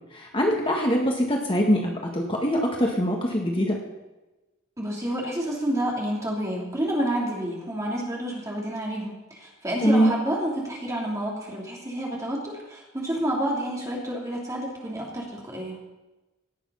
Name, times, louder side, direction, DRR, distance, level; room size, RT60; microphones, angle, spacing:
voice 1, 0.1-3.8 9.8-10.2, equal, 25° left, 0 dB, 1.6 m, -23 dB
voice 2, 4.8-15.8, right 1 dB, 15° right, -3 dB, 3.0 m, -29 dB
17.5 x 7.1 x 5.7 m, 1.1 s
head